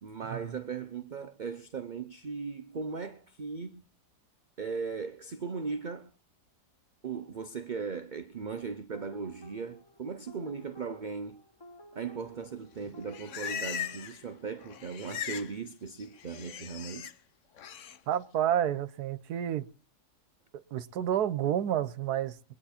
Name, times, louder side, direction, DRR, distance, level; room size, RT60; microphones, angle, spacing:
voice 1, 0.0-3.8 4.6-6.1 7.0-11.4 11.9-17.1, right 5 dB, 45° right, 0.6 m, -38 dB
sound 1, 8.9-13.8, left 1 dB, 15° left, 1.4 m, -53 dB
Livestock farm animals working animals, 12.8-14.2 14.5-15.5 15.8-17.1 17.6-18.0, left 9 dB, 55° left, 1.1 m, -39 dB
voice 2, 18.1-19.7 20.7-22.5, right 10 dB, 75° right, 1.4 m, -29 dB
22.5 x 9.6 x 4.3 m
omnidirectional pair, 1.7 m